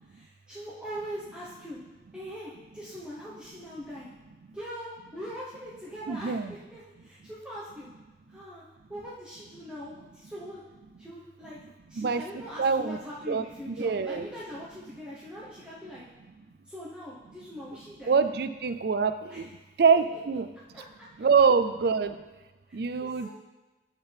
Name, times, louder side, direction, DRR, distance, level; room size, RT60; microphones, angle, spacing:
voice 1, 0.1-1.8 2.1-4.1 4.5-7.9 8.3-10.6 11.0-11.6 11.9-16.0 16.6-18.2 19.3-19.5 20.7-21.1 22.7-22.8 23.2-23.3, equal, 5° right, -8 dB, 1.0 m, -42 dB
voice 2, 6.1-6.5 12.0-12.2 12.6-13.0 13.3-14.3 18.1-19.4 19.8-20.5 21.2-22.1 22.7-23.3, right 5 dB, 60° right, 11 dB, 0.4 m, -25 dB
12.0 x 4.6 x 3.4 m, 1.2 s
head